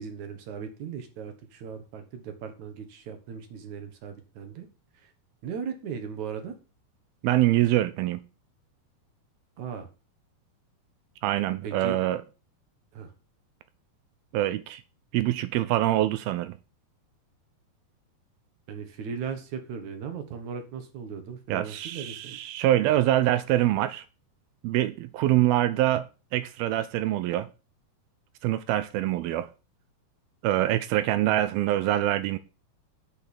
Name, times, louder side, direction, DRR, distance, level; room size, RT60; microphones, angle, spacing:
voice 1, 0.0-4.7 4.9-5.1 5.4-6.5 9.6-9.9 11.6-12.0 12.9-13.1 18.7-22.4 22.8-22.9, right 6 dB, 60° right, 2.4 m, -37 dB
voice 2, 7.2-8.2 11.2-12.2 14.3-14.8 15.1-16.6 21.5-24.0 24.6-26.1 26.3-27.5 28.4-29.5 30.4-32.4, right 14 dB, 80° right, 2.4 m, -25 dB
8.2 x 5.7 x 7.0 m
omnidirectional pair, 4.5 m